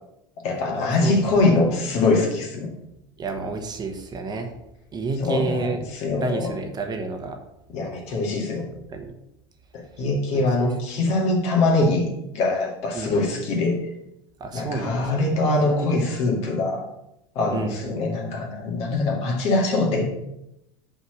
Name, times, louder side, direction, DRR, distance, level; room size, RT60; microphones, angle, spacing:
voice 1, 0.4-2.7 5.2-6.5 7.7-8.7 9.7-13.8 14.5-16.8 17.4-20.1, left 2 dB, 55° left, 0 dB, 2.1 m, -23 dB
voice 2, 3.2-4.6 4.9-7.4 8.9-9.2 10.3-10.4 12.9-13.5 14.4-16.0 17.5-17.9, right 3 dB, 35° right, 5 dB, 1.2 m, -30 dB
5.6 x 4.9 x 6.3 m, 0.86 s
hypercardioid pair, 90°, 13 cm